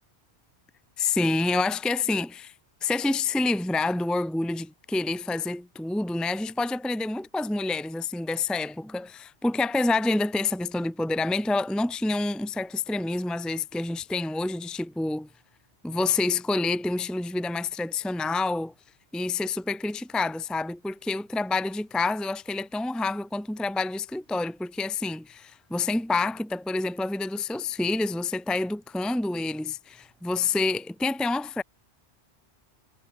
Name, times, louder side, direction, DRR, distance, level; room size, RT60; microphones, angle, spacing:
voice 1, 1.0-2.5 2.8-15.3 15.8-18.7 19.1-31.6, left 3 dB, ahead, 0.8 m, -28 dB
omnidirectional pair, 1.2 m